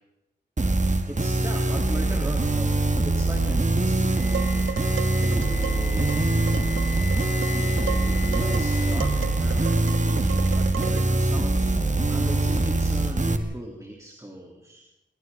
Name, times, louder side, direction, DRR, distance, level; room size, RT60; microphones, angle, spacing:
sound 1, 0.6-13.4, right 2 dB, 40° right, 1.9 m, -23 dB
voice 1, 1.1-2.7 3.0-4.7 5.2-6.1 7.1-11.7 12.1-14.8, right 1 dB, 15° right, -1 dB, 3.8 m, -38 dB
Wind instrument woodwind instrument, 4.1-10.1, left 9 dB, 60° left, 1.7 m, -39 dB
Dishes pots and pans, 4.3-11.2, right 7 dB, 90° right, 1.3 m, -36 dB
29.5 x 23.0 x 4.0 m, 0.89 s
wide cardioid pair, 80°, 20 cm